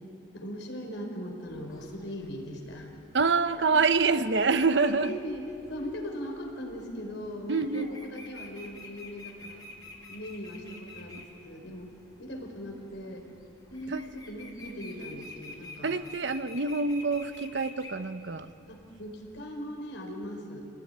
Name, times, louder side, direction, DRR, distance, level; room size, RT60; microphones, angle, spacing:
voice 1, 0.3-2.9 3.7-3.8 4.5-4.6 4.9-9.6 10.1-13.3 13.7-16.0 18.7-20.6, equal, 75° left, 2 dB, 4.6 m, -39 dB
sound 1, 1.5-19.4, left 2 dB, 20° left, 2.5 m, -49 dB
voice 2, 3.1-5.1 7.5-7.9 13.9-14.0 15.8-18.5, right 4 dB, 70° right, 11 dB, 0.9 m, -26 dB
28.5 x 18.5 x 10.0 m, 2.8 s
head